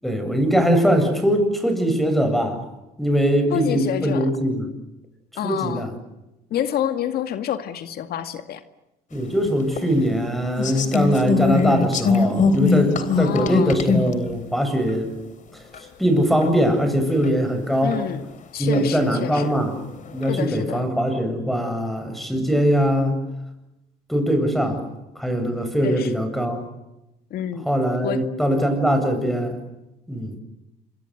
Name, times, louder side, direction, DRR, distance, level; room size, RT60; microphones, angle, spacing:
voice 1, 0.0-2.7 3.0-4.7 5.4-5.9 9.1-15.2 15.5-15.7 16.0-18.0 18.6-19.8 20.1-23.2 24.1-24.9 25.2-26.6 27.6-29.6 30.1-30.3, equal, ahead, 7 dB, 7.7 m, -21 dB
voice 2, 3.5-4.3 5.4-5.8 6.5-8.6 13.2-13.8 17.8-18.3 18.5-19.5 20.3-20.8 25.8-26.1 27.3-27.7 28.0-28.2, left 10 dB, 65° left, 9 dB, 2.1 m, -28 dB
sound 1, 9.8-9.9 10.6-14.1 14.9-15.0 15.7-15.8 16.4-16.5 17.2-17.3 17.9-18.0 18.7-19.5 20.0-20.3, left 5 dB, 50° left, 3.6 m, -21 dB
27.0 x 24.5 x 8.1 m, 0.94 s
cardioid pair, 110°, 17 cm